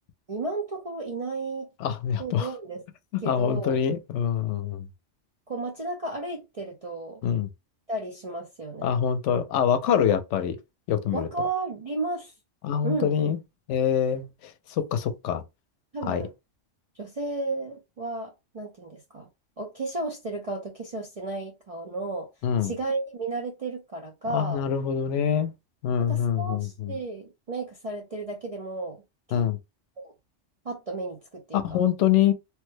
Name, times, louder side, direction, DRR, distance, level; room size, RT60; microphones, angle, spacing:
voice 1, 0.3-1.7 2.2-2.8 3.2-3.8 5.5-7.2 7.9-8.9 11.1-12.3 12.8-13.1 15.9-16.3 17.0-19.3 19.6-22.3 22.6-24.6 26.0-29.0 29.3-29.4 30.0-30.1 30.6-31.8, right 3 dB, 40° right, 0.5 m, -33 dB
voice 2, 1.8-2.5 3.2-4.9 7.2-7.5 8.8-10.6 10.9-11.3 12.6-13.4 13.7-15.4 16.0-16.3 22.4-22.7 24.3-25.5 25.8-26.9 29.3-29.6 31.5-32.3, left 8 dB, 75° left, 0.9 m, -25 dB
3.1 x 2.1 x 3.1 m
omnidirectional pair, 1.2 m